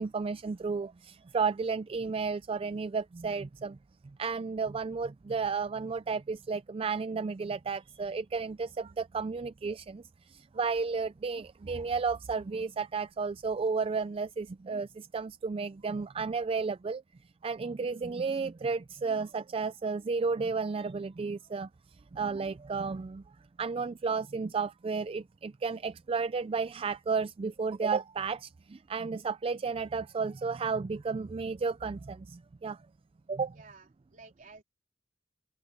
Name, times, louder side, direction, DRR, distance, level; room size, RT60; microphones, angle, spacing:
voice 1, 0.0-3.8 4.2-17.0 17.4-21.7 22.1-23.2 23.6-32.8 33.3-33.6, right 4 dB, 30° right, 0.3 m, -33 dB
voice 2, 33.5-34.6, right 4 dB, 45° right, 3.6 m, -53 dB
open air
head